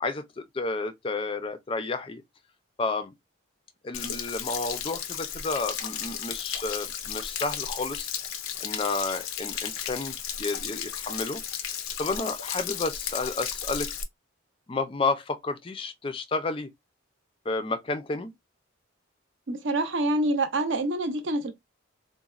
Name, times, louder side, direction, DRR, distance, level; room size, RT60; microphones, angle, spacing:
voice 1, 0.0-2.2 2.8-3.1 3.8-8.1 8.6-11.4 12.0-13.9 14.7-16.7 17.5-18.3, left 3 dB, 25° left, 0.4 m, -31 dB
Stream / Splash splatter / Trickle dribble, 3.9-14.0, left 9 dB, 80° left, 0.5 m, -34 dB
voice 2, 19.5-21.5, right 1 dB, 60° right, 0.6 m, -26 dB
3.9 x 2.1 x 2.3 m
head